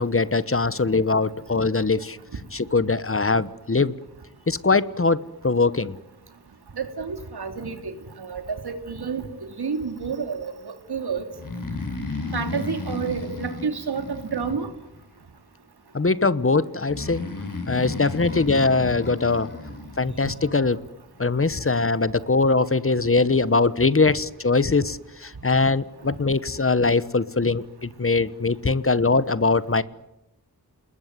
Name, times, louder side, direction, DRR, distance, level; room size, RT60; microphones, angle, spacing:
voice 1, 0.0-2.2 2.5-3.9 4.5-6.0 15.9-17.3 17.7-19.5 20.0-20.8 21.2-29.8, left 3 dB, 35° left, 16 dB, 1.1 m, -22 dB
voice 2, 6.8-7.9 8.2-9.2 9.6-10.5 10.9-11.2 12.3-14.1 14.3-14.7, right 5 dB, 90° right, 7 dB, 2.9 m, -29 dB
Breathing, 11.3-15.0 16.9-20.0, left 3 dB, 60° left, 5.4 m, -33 dB
28.0 x 21.0 x 9.4 m, 0.90 s
wide cardioid pair, 75°, 38 cm